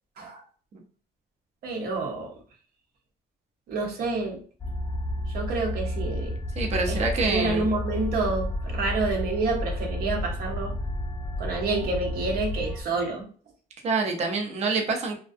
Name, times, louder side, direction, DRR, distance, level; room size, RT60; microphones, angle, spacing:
voice 1, 1.6-2.4 3.7-4.4 5.3-6.4 6.9-7.0 7.3-10.7 11.4-13.3, right 3 dB, 65° right, 0 dB, 0.9 m, -28 dB
sound 1, 4.6-12.8, left 1 dB, 15° left, 0.4 m, -31 dB
voice 2, 6.6-7.6 13.8-15.2, right 4 dB, 40° right, 2 dB, 0.6 m, -26 dB
2.5 x 2.2 x 2.5 m, 0.43 s
cardioid pair, 110°, 17 cm